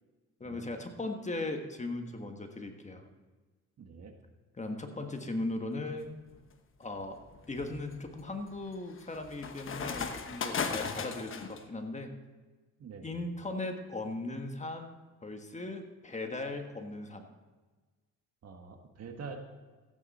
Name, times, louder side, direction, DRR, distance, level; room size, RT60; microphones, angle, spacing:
voice 1, 0.4-3.1 4.6-6.1 6.8-7.2 7.5-12.1 13.0-14.9 15.2-17.3, left 2 dB, 25° left, 5 dB, 1.5 m, -38 dB
voice 2, 3.8-4.1 12.8-13.2 18.4-19.4, right 5 dB, 55° right, 4 dB, 1.8 m, -45 dB
sound 1, 6.1-6.4 7.0-11.6, left 5 dB, 45° left, 1.1 m, -37 dB
15.0 x 9.0 x 4.2 m, 1.3 s
cardioid pair, 90°, 30 cm